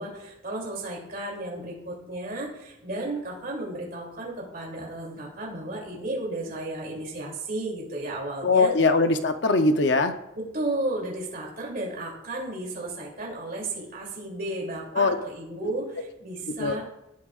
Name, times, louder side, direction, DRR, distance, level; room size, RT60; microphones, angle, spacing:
voice 1, 0.0-8.7 10.3-16.8, right 2 dB, 50° right, -3 dB, 2.9 m, -33 dB
voice 2, 8.4-10.1 15.0-15.2 16.6-16.8, left 3 dB, 60° left, 8 dB, 0.7 m, -21 dB
17.0 x 8.5 x 2.5 m, 0.89 s
head